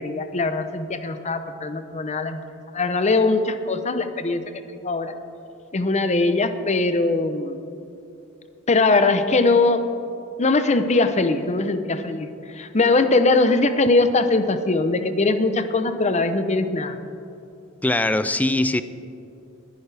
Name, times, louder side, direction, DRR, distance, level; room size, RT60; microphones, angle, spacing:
voice 1, 0.0-2.4 2.7-4.4 4.8-5.1 5.7-7.6 8.7-9.9 10.4-12.3 12.5-17.0, left 3 dB, 35° left, 0.7 m, -21 dB
voice 2, 17.8-18.8, left 2 dB, 5° left, 0.3 m, -21 dB
20.5 x 10.5 x 3.4 m
head